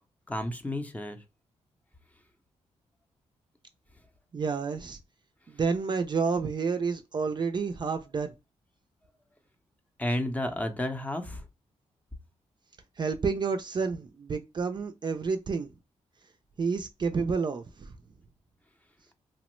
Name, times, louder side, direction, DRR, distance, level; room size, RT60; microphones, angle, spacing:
voice 1, 0.3-1.2 10.0-11.4, left 1 dB, 10° left, 0.6 m, -31 dB
voice 2, 4.3-5.0 5.5-8.3 13.0-15.7 16.6-17.9, right 5 dB, 40° right, 0.4 m, -29 dB
2.9 x 2.0 x 3.0 m
cardioid pair, 80°, 12 cm